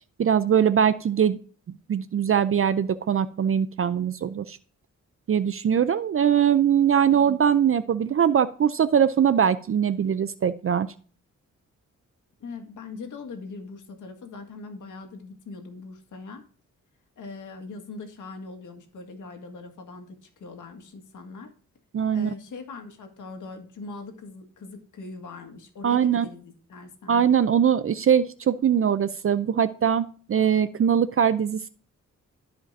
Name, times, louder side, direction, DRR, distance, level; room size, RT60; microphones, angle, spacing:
voice 1, 0.2-1.4 1.9-4.6 5.3-10.9 21.9-22.3 25.8-26.3 27.1-31.7, right 8 dB, 45° right, 15 dB, 0.5 m, -22 dB
voice 2, 7.0-7.4 12.4-16.4 17.2-21.5 22.1-27.2, left 3 dB, 85° left, 4 dB, 1.8 m, -41 dB
14.0 x 5.1 x 2.6 m, 0.42 s
cardioid pair, 90°, 30 cm